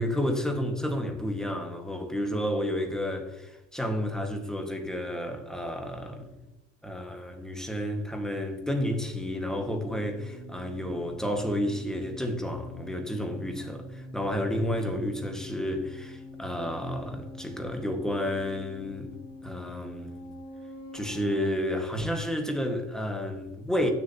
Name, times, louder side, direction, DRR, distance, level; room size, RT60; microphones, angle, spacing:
voice 1, 0.0-6.3 6.8-19.1 19.4-20.2 20.9-23.9, equal, ahead, 1.6 m, -31 dB
sound 1, 9.0-21.5, left 1 dB, 55° left, 2.0 m, -45 dB
16.5 x 7.0 x 2.9 m
cardioid pair, 115°, 29 cm